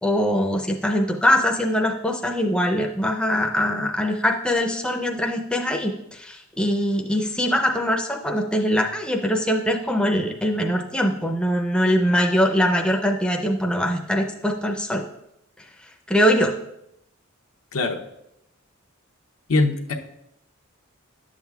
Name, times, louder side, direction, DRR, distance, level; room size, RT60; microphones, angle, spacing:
voice 1, 0.0-15.0 16.1-16.5, equal, 5° left, 1 dB, 0.5 m, -22 dB
voice 2, 19.5-19.9, left 3 dB, 75° left, 3 dB, 0.8 m, -22 dB
11.0 x 7.4 x 2.3 m, 0.82 s
head